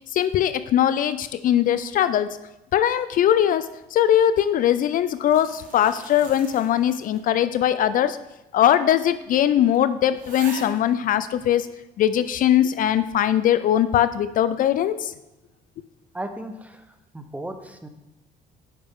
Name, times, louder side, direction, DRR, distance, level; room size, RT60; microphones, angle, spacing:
voice 1, 0.1-2.3 2.7-8.2 8.5-11.7 12.0-15.1, left 10 dB, 55° left, 13 dB, 0.4 m, -20 dB
sound 1, 4.9-7.4 7.7-7.8 8.6-8.7 9.1-9.2 9.7-9.8 10.1-10.8 11.5-11.6, right 3 dB, 55° right, 1.8 m, -42 dB
voice 2, 16.1-17.9, right 1 dB, 10° right, 7 dB, 0.8 m, -36 dB
9.9 x 5.2 x 3.6 m, 0.96 s
cardioid pair, 110°, 17 cm